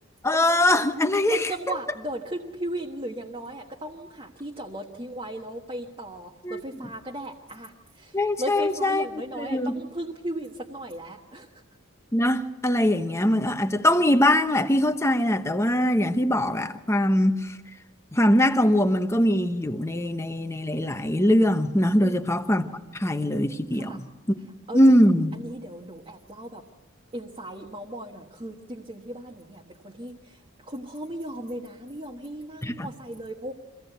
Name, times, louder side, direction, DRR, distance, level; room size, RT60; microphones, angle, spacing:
voice 1, 0.2-1.8 6.4-6.9 8.1-9.8 12.1-17.6 18.1-22.6 22.9-24.0 24.7-25.3 32.6-32.9, left 1 dB, 15° left, 0.9 m, -22 dB
voice 2, 1.3-8.1 8.4-11.5 22.0-22.3 23.8-24.0 24.7-24.8 25.3-26.6 27.1-30.4 30.7-33.5, right 1 dB, 25° right, 1.3 m, -36 dB
24.0 x 16.5 x 8.0 m
head